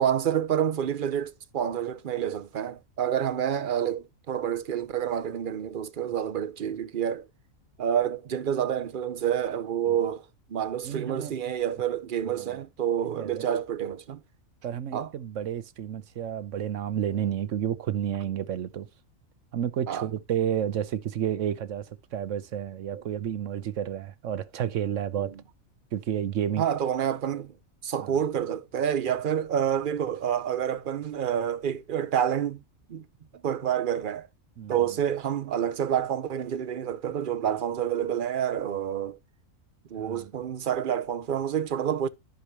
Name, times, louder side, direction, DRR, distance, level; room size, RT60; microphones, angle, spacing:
voice 1, 0.0-7.3 7.8-10.2 10.5-14.2 14.9-15.1 19.9-20.1 22.9-23.0 25.2-25.3 26.6-27.5 27.8-32.6 32.9-33.0 33.4-34.3 34.7-39.2 39.9-42.1, right 9 dB, 50° right, 0.8 m, -28 dB
voice 2, 10.8-11.3 12.3-12.6 13.2-13.5 14.6-18.9 19.5-25.3 25.9-26.6 28.0-28.1 34.6-34.7 40.0-40.3, right 10 dB, 70° right, 1.1 m, -31 dB
14.5 x 5.0 x 2.9 m
omnidirectional pair, 1.4 m